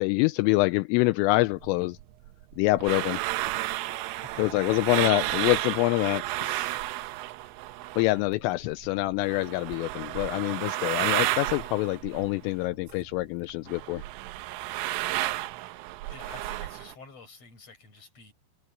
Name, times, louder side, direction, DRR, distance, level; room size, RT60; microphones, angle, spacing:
voice 1, 0.0-2.0 2.6-3.2 4.4-6.8 8.0-14.0, left 21 dB, 85° left, 3.2 m, -26 dB
sound 1, 1.6-8.3 8.6-13.2 13.5-16.9, right 17 dB, 80° right, 3.4 m, -32 dB
voice 2, 4.1-4.4 16.1-18.3, left 3 dB, 30° left, 8.1 m, -48 dB
omnidirectional pair, 5.8 m